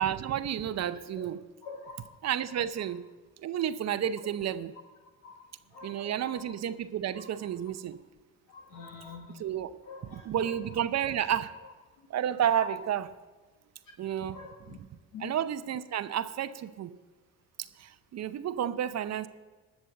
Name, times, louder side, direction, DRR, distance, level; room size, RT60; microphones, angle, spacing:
voice 1, 0.0-1.4 2.2-3.0 3.4-4.7 5.8-8.0 9.4-9.8 10.1-11.5 12.1-13.1 14.0-14.4 15.2-16.9 17.8-19.3, right 10 dB, 50° right, 13 dB, 0.7 m, -31 dB
voice 2, 1.6-2.2 2.5-2.9 5.2-6.5 7.1-7.5 8.5-9.4 9.8-10.8 12.0-12.1 12.6-12.7 14.3-14.8 15.1-15.3, left 4 dB, 75° left, 0 dB, 1.6 m, -47 dB
12.0 x 6.8 x 7.6 m, 1.3 s
supercardioid pair, 65°, 33 cm